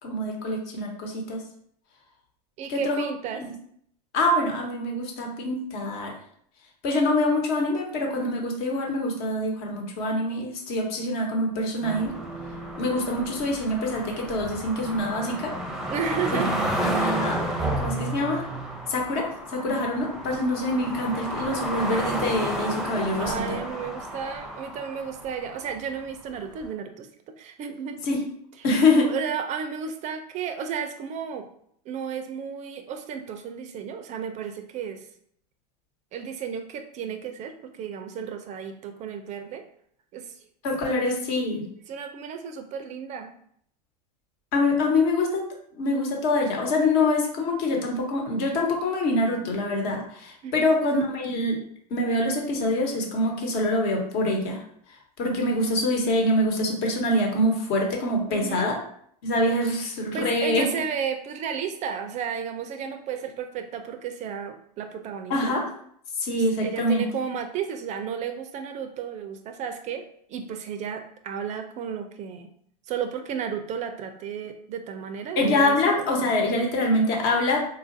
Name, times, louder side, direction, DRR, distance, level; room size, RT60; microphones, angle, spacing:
voice 1, 0.0-1.4 2.7-3.1 3.4-3.5 4.1-6.1 6.8-12.1 12.8-15.5 16.3-18.4 18.9-23.6 28.0-28.2 28.6-29.1 40.6-41.7 44.5-45.4 45.8-51.6 51.9-54.6 55.2-58.8 59.2-60.6 65.3-65.6 66.2-67.0 75.4-77.7, left 1 dB, 55° left, 0 dB, 1.2 m, -25 dB
voice 2, 2.6-3.4 15.9-16.5 23.2-27.1 27.4-28.0 29.1-31.5 31.9-35.1 36.1-39.7 40.1-40.4 41.0-41.2 41.9-43.3 50.4-50.7 58.3-58.7 60.1-65.6 66.4-70.0 70.3-72.5 72.9-75.8, right 7 dB, 35° right, 7 dB, 0.4 m, -33 dB
sound 1, 11.8-25.9 26.6-26.7, right 1 dB, ahead, 0.6 m, -31 dB
4.0 x 2.4 x 2.6 m, 0.66 s
hypercardioid pair, 100°, 20 cm